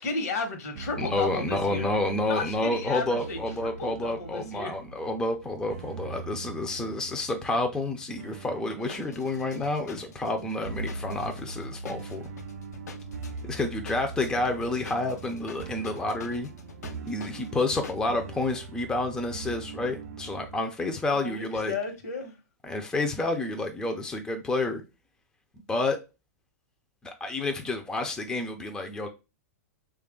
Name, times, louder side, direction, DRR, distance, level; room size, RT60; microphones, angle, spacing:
voice 1, 0.0-1.9 2.3-4.7 21.1-22.3, left 3 dB, 70° left, 1.1 m, -33 dB
sound 1, 0.8-20.6, right 4 dB, 70° right, 0.4 m, -41 dB
voice 2, 1.0-12.3 13.4-16.5 17.1-21.7 22.6-24.8 25.7-26.0 27.0-29.1, left 2 dB, 10° left, 0.4 m, -29 dB
sound 2, 8.8-18.0, left 5 dB, 90° left, 0.5 m, -46 dB
3.2 x 2.3 x 3.6 m
hypercardioid pair, 130°, 9 cm